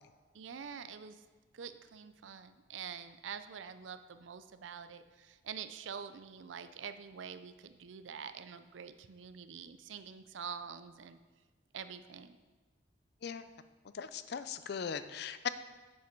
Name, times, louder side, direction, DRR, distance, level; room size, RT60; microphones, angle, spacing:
voice 1, 0.3-1.2 1.5-11.2 11.7-12.4, right 7 dB, 90° right, 11 dB, 0.5 m, -46 dB
voice 2, 13.9-15.5, left 7 dB, 60° left, 12 dB, 0.4 m, -38 dB
7.3 x 7.2 x 4.5 m, 1.3 s
head